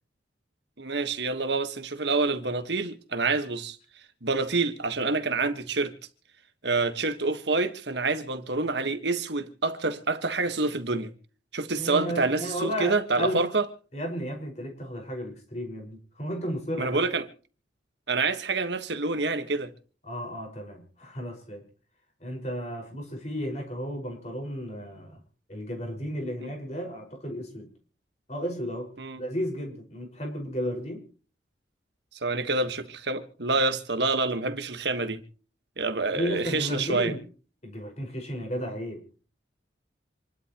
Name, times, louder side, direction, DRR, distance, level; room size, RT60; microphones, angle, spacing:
voice 1, 0.8-3.8 4.2-5.9 6.6-11.1 11.5-13.7 16.8-17.3 18.1-19.7 26.4-26.5 29.0-29.2 32.2-35.2 35.8-37.1, right 3 dB, 65° right, 1.5 m, -27 dB
voice 2, 11.8-13.5 13.9-17.0 20.0-21.6 22.2-25.2 25.5-27.7 28.3-28.9 29.2-31.0 36.1-37.2 37.6-39.2, equal, 35° left, 5.5 m, -33 dB
27.5 x 12.0 x 3.1 m
head